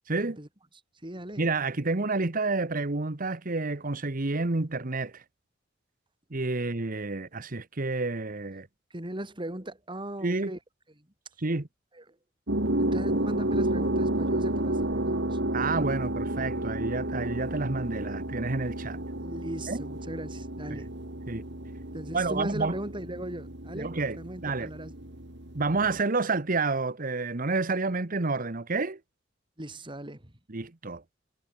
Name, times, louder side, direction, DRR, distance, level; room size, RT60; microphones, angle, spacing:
voice 1, 0.1-0.4 1.4-5.2 6.3-8.7 10.2-10.5 11.4-11.7 15.5-19.0 19.7-19.8 20.7-20.8 21.3-21.4 22.1-22.8 23.7-24.7 25.5-29.0 30.5-31.0, right 3 dB, 45° right, 1.2 m, -29 dB
voice 2, 1.0-1.5 8.9-10.6 11.9-12.1 12.8-15.4 19.2-20.9 21.9-24.9 25.8-25.9 29.6-30.3, right 1 dB, 25° right, 3.4 m, -38 dB
sound 1, 12.5-26.0, right 1 dB, 65° right, 3.2 m, -31 dB
head